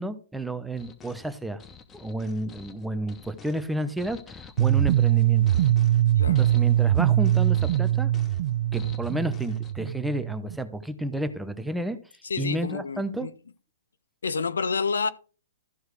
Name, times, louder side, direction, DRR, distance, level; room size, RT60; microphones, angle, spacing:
voice 1, 0.0-1.6 1.9-5.4 6.3-8.1 8.7-12.0 12.4-13.3, right 1 dB, 5° right, 0.9 m, -31 dB
sound 1, 0.8-9.7, left 5 dB, 20° left, 1.1 m, -47 dB
sound 2, 4.6-10.6, right 12 dB, 55° right, 0.4 m, -22 dB
voice 2, 12.2-13.3 14.2-15.1, left 5 dB, 75° left, 0.6 m, -29 dB
14.0 x 4.7 x 4.8 m
hypercardioid pair, 120°, 0 cm